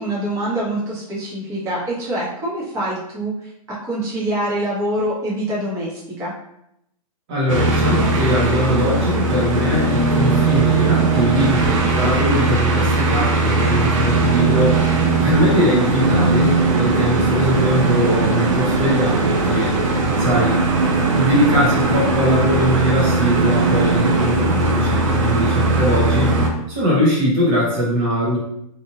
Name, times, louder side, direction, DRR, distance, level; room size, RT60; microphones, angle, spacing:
voice 1, 0.0-3.3 3.7-6.3, right 1 dB, 15° right, -7 dB, 1.0 m, -25 dB
voice 2, 7.3-14.8 15.2-19.8 20.2-20.6 21.2-26.4 26.7-28.4, equal, 35° right, -5 dB, 1.0 m, -21 dB
sound 1, 7.5-26.5, right 3 dB, 55° right, 0.7 m, -18 dB
2.8 x 2.5 x 2.8 m, 0.78 s
hypercardioid pair, 150°, 19 cm